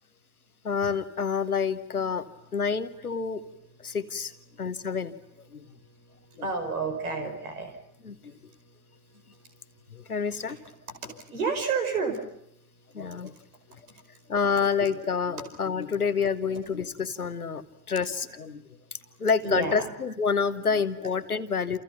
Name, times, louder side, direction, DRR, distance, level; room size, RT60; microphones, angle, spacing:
voice 1, 0.6-2.3 2.5-3.4 3.8-4.3 4.6-5.1 5.5-5.6 6.4-6.5 8.0-8.3 9.9-10.6 12.9-13.3 14.3-18.6 18.9-21.8, left 6 dB, 90° left, 14 dB, 1.1 m, -28 dB
voice 2, 6.4-7.7 11.3-12.2 14.8-14.9 19.4-19.9, right 4 dB, 80° right, 5 dB, 5.2 m, -29 dB
29.5 x 28.5 x 5.9 m, 0.74 s
figure-of-eight pair, 50°, 43 cm